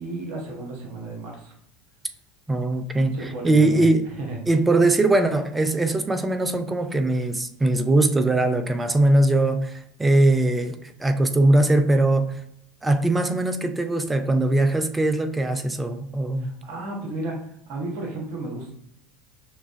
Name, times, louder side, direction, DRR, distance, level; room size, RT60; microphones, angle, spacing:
voice 1, 0.0-1.5 3.1-3.9 4.2-4.4 16.4-17.4 17.7-18.7, right 2 dB, 55° right, 1.2 m, -33 dB
voice 2, 2.5-4.1 4.5-12.4 12.8-16.5, right 2 dB, 15° right, 0.5 m, -21 dB
5.9 x 2.3 x 2.6 m
hypercardioid pair, 80°, 0 cm